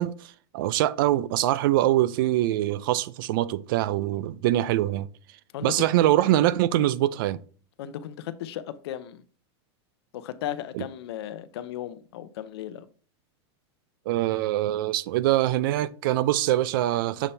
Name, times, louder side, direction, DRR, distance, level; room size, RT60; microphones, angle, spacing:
voice 1, 0.0-5.1 5.6-7.4 10.7-10.8 14.1-17.3, right 14 dB, 50° right, 0.4 m, -24 dB
voice 2, 7.8-9.2 10.1-12.9, left 11 dB, 65° left, 0.6 m, -35 dB
7.0 x 4.2 x 3.3 m
supercardioid pair, 165°, 14 cm